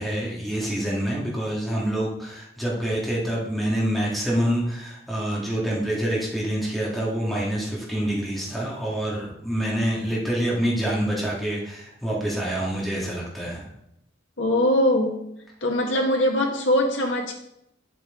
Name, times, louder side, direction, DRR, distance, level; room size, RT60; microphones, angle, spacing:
voice 1, 0.0-13.7, right 1 dB, ahead, -5 dB, 2.2 m, -26 dB
voice 2, 14.4-15.3 15.6-17.3, left 1 dB, 70° left, 2 dB, 1.8 m, -22 dB
9.7 x 7.8 x 3.8 m, 0.79 s
head